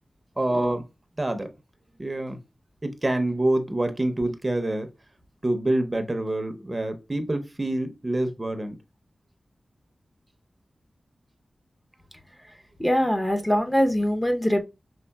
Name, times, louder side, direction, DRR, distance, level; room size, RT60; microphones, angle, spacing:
voice 1, 0.4-0.8 1.2-1.5 2.0-2.4 2.8-4.9 5.4-8.7, right 1 dB, 25° right, 0.6 m, -26 dB
voice 2, 12.8-14.6, equal, 15° left, 0.7 m, -23 dB
5.4 x 3.3 x 2.2 m
wide cardioid pair, 80°, 0 cm